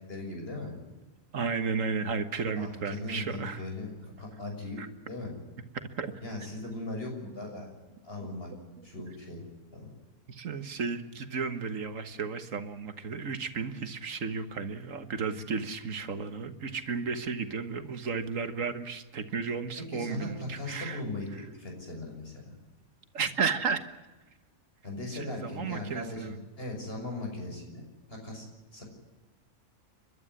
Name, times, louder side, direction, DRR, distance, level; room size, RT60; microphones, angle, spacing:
voice 1, 0.1-0.7 2.6-4.8 5.1-5.3 6.2-7.7 8.0-8.5 8.8-9.9 19.8-22.5 24.8-27.8 28.1-28.5 28.7-28.8, left 2 dB, 40° left, 1 dB, 6.7 m, -39 dB
voice 2, 1.3-3.6 4.8-4.9 6.0-6.1 10.3-21.0 23.1-23.8 25.1-26.4, right 5 dB, 65° right, 10 dB, 1.8 m, -33 dB
30.0 x 12.5 x 9.8 m, 1.2 s
omnidirectional pair, 1.5 m